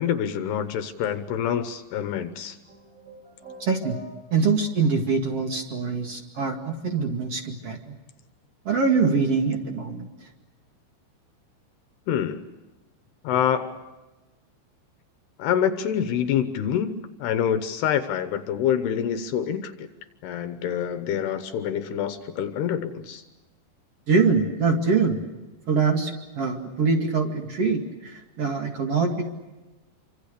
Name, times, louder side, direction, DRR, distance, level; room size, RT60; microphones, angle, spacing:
voice 1, 0.0-2.6 12.1-12.4 13.2-13.8 15.4-19.9 20.2-23.2, left 9 dB, 70° left, 10 dB, 2.8 m, -26 dB
sound 1, 2.7-4.7, equal, 20° right, 4.7 m, -45 dB
voice 2, 3.6-4.0 4.3-7.9 8.7-10.1 24.1-25.2 25.7-29.3, right 4 dB, 45° right, 3 dB, 2.3 m, -24 dB
28.0 x 25.5 x 6.7 m, 1.1 s
omnidirectional pair, 5.4 m